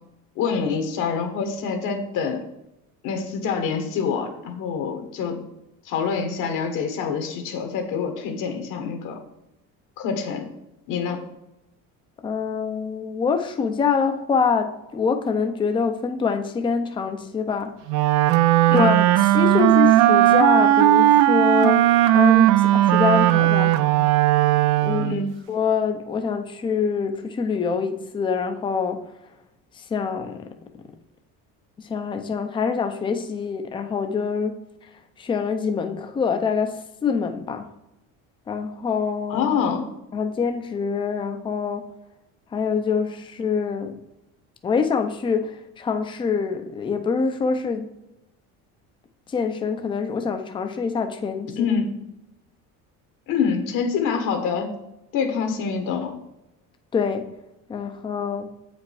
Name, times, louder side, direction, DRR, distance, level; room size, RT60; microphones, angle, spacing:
voice 1, 0.4-2.4 3.0-5.4 5.8-9.2 10.0-10.5 10.9-11.2 18.7-19.0 25.0-25.3 39.3-39.8 51.5-51.9 53.3-54.7 55.1-56.1, left 6 dB, 65° left, 4 dB, 1.6 m, -26 dB
voice 2, 12.2-17.7 18.7-19.0 19.2-23.7 24.8-25.2 25.5-29.0 29.8-30.5 31.8-34.6 35.2-37.7 38.5-39.5 40.1-41.8 42.5-44.0 44.6-47.9 49.3-51.7 56.9-57.3 57.7-58.5, left 5 dB, 15° left, 6 dB, 0.5 m, -25 dB
Wind instrument woodwind instrument, 17.9-25.3, right 14 dB, 65° right, 0.5 m, -17 dB
8.2 x 5.1 x 4.8 m, 0.89 s
cardioid pair, 170°, 34 cm